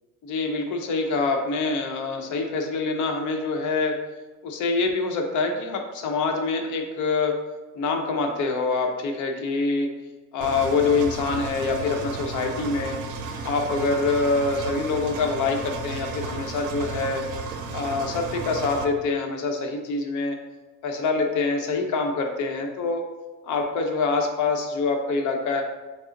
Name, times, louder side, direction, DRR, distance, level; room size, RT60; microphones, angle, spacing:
voice 1, 0.2-4.0 4.4-7.4 7.7-9.9 10.3-13.0 13.4-17.2 17.7-20.4 20.8-23.1 23.4-25.6, left 3 dB, 70° left, 3 dB, 0.7 m, -25 dB
Engine, 10.4-18.8, right 4 dB, 75° right, 0.5 m, -34 dB
5.1 x 2.0 x 3.8 m, 1.2 s
cardioid pair, 135°, 31 cm